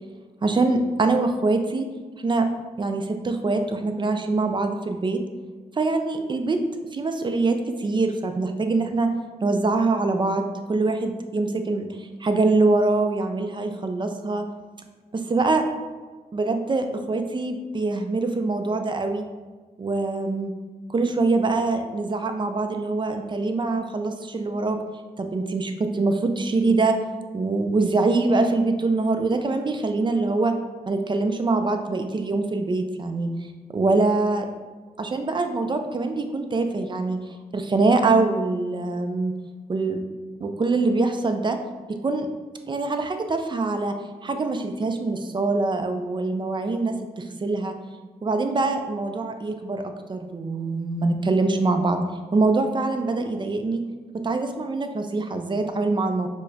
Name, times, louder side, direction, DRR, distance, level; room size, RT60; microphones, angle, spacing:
voice 1, 0.4-1.9 2.2-2.5 2.8-5.2 5.7-6.6 6.9-9.1 9.4-14.4 15.1-15.6 16.3-19.2 19.8-20.5 20.9-24.8 25.2-27.0 27.3-30.5 30.9-33.3 33.7-34.5 35.0-37.2 37.5-39.3 39.7-40.0 40.4-41.6 42.0-42.3 42.7-43.9 44.2-47.7 48.2-49.8 50.1-52.0 52.3-53.8 54.2-56.3, right 3 dB, 30° right, 6 dB, 0.4 m, -24 dB
4.6 x 2.1 x 2.7 m, 1.4 s
cardioid pair, 60°, 16 cm